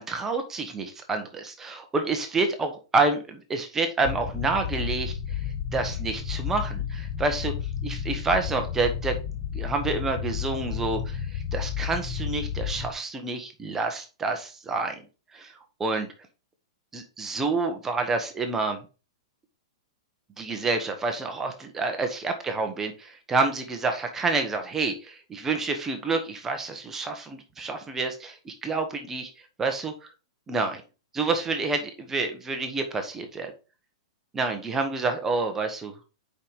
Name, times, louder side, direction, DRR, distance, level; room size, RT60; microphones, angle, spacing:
voice 1, 0.0-5.1 5.7-7.5 7.8-9.2 9.5-14.9 15.3-15.5 15.8-16.1 16.9-18.8 20.4-29.3 29.6-29.9 30.5-30.8 31.1-33.5 34.3-35.9, right 3 dB, 15° right, 5 dB, 1.1 m, -28 dB
sound 1, 4.0-12.9, left 8 dB, 35° left, 1.0 m, -32 dB
5.6 x 5.2 x 4.7 m, 0.32 s
hypercardioid pair, 145°, 3 cm